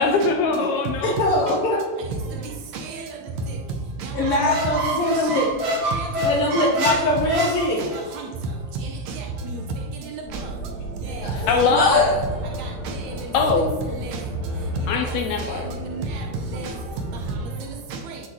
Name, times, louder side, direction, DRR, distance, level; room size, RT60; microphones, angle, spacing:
voice 1, 0.0-1.2 11.5-12.1 13.3-13.7 14.9-15.7, left 4 dB, 85° left, 1.6 m, -21 dB
voice 2, 1.0-1.8 4.1-5.5 6.2-7.8 11.2-12.1, left 1 dB, 65° left, 1.5 m, -22 dB
voice 3, 2.3-3.2 3.5-3.6 4.0-4.2 5.2-5.4 6.0-6.1 6.5-6.6 6.9-7.0 7.8-7.9 8.1-8.3 8.8-9.6 10.1-10.8 11.1-12.1 12.6-13.1 14.0-14.2 15.0-16.3 16.5-16.7 17.6-18.2, right 3 dB, 75° right, 1.6 m, -33 dB
Squeak, 4.2-8.2, right 1 dB, 55° right, 2.3 m, -27 dB
sound 1, 10.2-17.4, equal, 15° left, 1.1 m, -33 dB
10.5 x 3.8 x 2.9 m
omnidirectional pair, 3.7 m